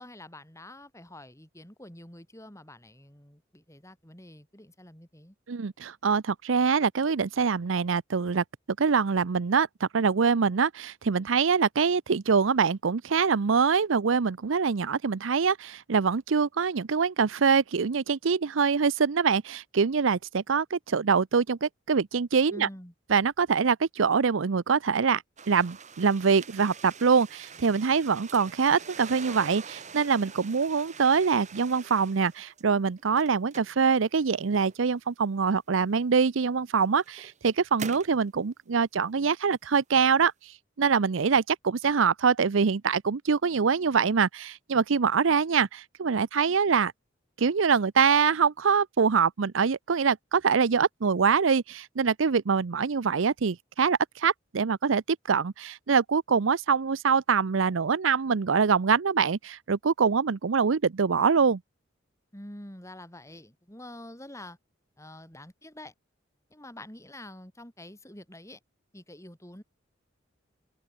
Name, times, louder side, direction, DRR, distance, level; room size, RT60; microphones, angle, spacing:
voice 1, 0.0-5.4 22.5-22.9 62.3-64.6 65.0-65.9 66.5-68.6 68.9-69.6, left 1 dB, 15° left, 7.1 m, -46 dB
voice 2, 5.5-8.4 8.8-22.7 23.1-40.3 40.8-46.9 47.4-55.0 55.3-61.6, right 5 dB, 80° right, 0.6 m, -24 dB
sound 1, 25.4-32.6 33.0-35.0 35.9-36.0 36.7-38.2, right 5 dB, 40° right, 2.6 m, -45 dB
head